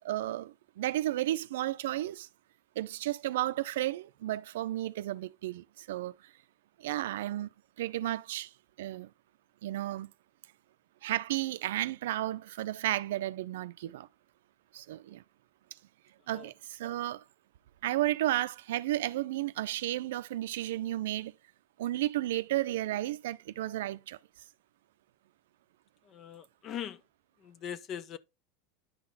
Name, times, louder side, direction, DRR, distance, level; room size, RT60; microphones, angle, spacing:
voice 1, 0.0-2.3 2.8-6.3 6.8-7.5 7.8-8.5 8.8-9.1 9.6-10.1 11.0-14.1 14.7-15.2 16.3-17.2 17.8-21.3 21.8-24.2, right 14 dB, 85° right, 0.5 m, -33 dB
voice 2, 26.1-27.0 27.4-28.2, left 9 dB, 40° left, 0.8 m, -41 dB
10.5 x 4.0 x 4.1 m
supercardioid pair, 120°, 0 cm